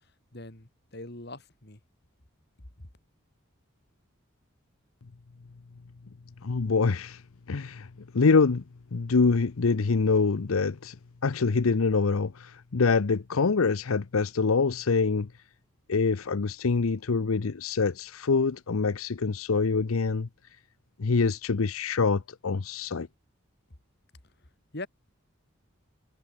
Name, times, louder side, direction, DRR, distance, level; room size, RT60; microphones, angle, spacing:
voice 1, 0.3-1.8 24.7-24.9, left 2 dB, 50° left, 2.7 m, -41 dB
voice 2, 6.4-7.2 7.5-7.9 8.1-8.6 8.9-11.0 11.2-15.3 15.9-20.3 21.0-23.1, left 4 dB, 90° left, 0.7 m, -25 dB
head